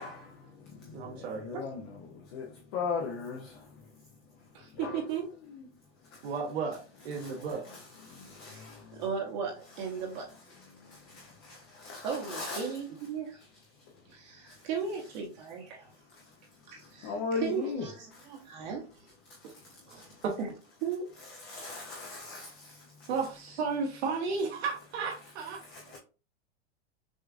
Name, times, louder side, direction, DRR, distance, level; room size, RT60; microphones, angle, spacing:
voice 1, 0.0-5.0 5.4-5.7 6.0-6.3 7.1-9.0 9.7-10.2 10.5-12.8 13.7-14.1 14.4-14.7 15.9-18.7 19.2-20.2 21.2-23.1 25.2-25.3 25.6-26.0, left 4 dB, 25° left, 0.4 m, -41 dB
voice 2, 0.9-1.5 6.2-7.7 8.5-8.6 19.9-20.3 23.1-25.6, right 5 dB, 65° right, 1.1 m, -34 dB
voice 3, 4.5-5.2 8.9-10.3 12.0-13.4 14.1-15.9 16.7-17.1 17.4-18.8 20.4-20.5 20.8-21.1 25.9-26.0, right 6 dB, 40° right, 0.9 m, -36 dB
6.1 x 2.4 x 2.4 m
supercardioid pair, 170°, 34 cm